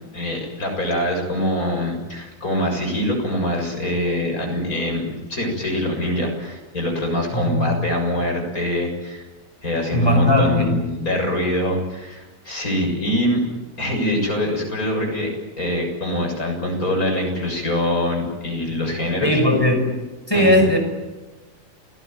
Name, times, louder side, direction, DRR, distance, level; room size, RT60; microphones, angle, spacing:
voice 1, 0.1-9.3 9.6-13.4 13.8-15.3 15.6-19.3 20.3-20.6, left 1 dB, 55° left, 2 dB, 7.4 m, -24 dB
voice 2, 7.3-7.7 9.9-10.8 19.2-20.0 20.3-20.8, equal, 15° left, 4 dB, 5.7 m, -18 dB
28.0 x 19.5 x 9.3 m, 1.2 s
omnidirectional pair, 1.8 m